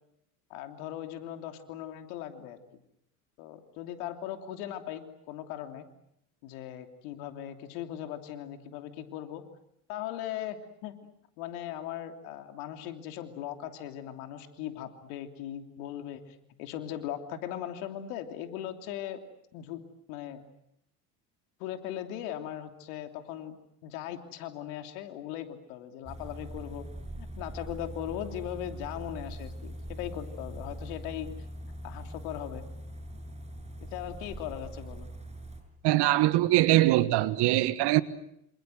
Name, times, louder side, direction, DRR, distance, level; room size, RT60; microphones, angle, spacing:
voice 1, 0.5-2.6 3.4-5.8 6.4-9.4 9.9-11.0 11.4-19.2 19.5-19.8 20.1-20.4 21.6-23.5 23.8-26.9 27.2-31.3 31.8-32.6 33.8-35.1, left 11 dB, 75° left, 3.2 m, -39 dB
sound 1, 26.1-35.6, right 1 dB, 15° right, 7.6 m, -42 dB
voice 2, 35.8-38.0, right 16 dB, 65° right, 1.7 m, -22 dB
27.5 x 27.0 x 7.9 m
hypercardioid pair, 70°, 44 cm